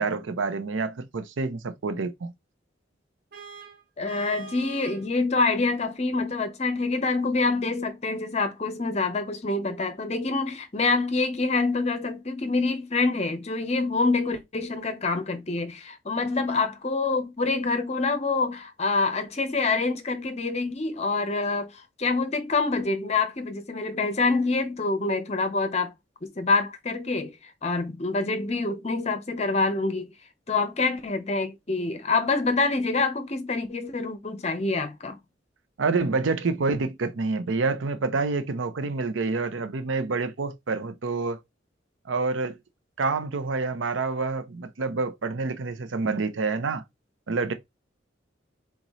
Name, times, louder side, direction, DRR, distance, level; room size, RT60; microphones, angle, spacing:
voice 1, 0.0-2.3 35.8-41.4 42.1-42.6 43.0-46.8 47.3-47.5, right 4 dB, 85° right, 0.6 m, -27 dB
Vehicle horn car horn honking, 3.3-5.1, right 5 dB, 55° right, 1.0 m, -44 dB
voice 2, 4.0-25.9 26.4-27.3 27.6-30.1 30.5-35.2, left 3 dB, 35° left, 0.7 m, -26 dB
4.0 x 3.7 x 3.0 m
head